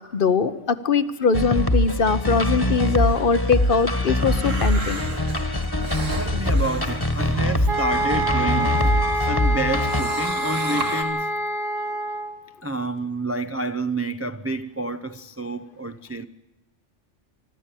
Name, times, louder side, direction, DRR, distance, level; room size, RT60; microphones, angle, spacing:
voice 1, 0.1-5.0, left 5 dB, 50° left, 1.0 m, -21 dB
sound 1, 1.3-10.0, left 1 dB, 20° left, 1.5 m, -23 dB
sound 2, 2.9-9.2 9.6-11.0, right 2 dB, 85° right, 2.9 m, -35 dB
voice 2, 6.1-11.3 12.6-16.3, right 2 dB, 20° right, 0.4 m, -29 dB
sound 3, 7.7-12.4, right 1 dB, 70° right, 2.1 m, -26 dB
24.5 x 13.0 x 9.1 m
omnidirectional pair, 1.3 m